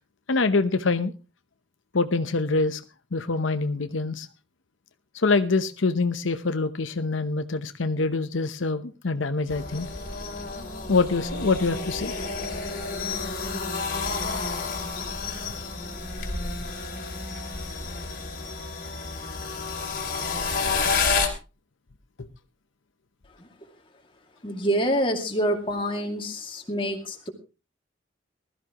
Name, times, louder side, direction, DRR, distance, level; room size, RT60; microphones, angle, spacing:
voice 1, 0.3-1.1 1.9-2.8 3.1-4.3 5.1-9.9 10.9-12.2 22.2-22.3, left 3 dB, 85° left, 9 dB, 0.8 m, -25 dB
sound 1, 9.5-21.3, left 4 dB, 45° left, 2.8 m, -30 dB
voice 2, 24.4-27.3, equal, 25° left, 3 dB, 2.3 m, -27 dB
20.0 x 13.5 x 3.0 m, 0.31 s
head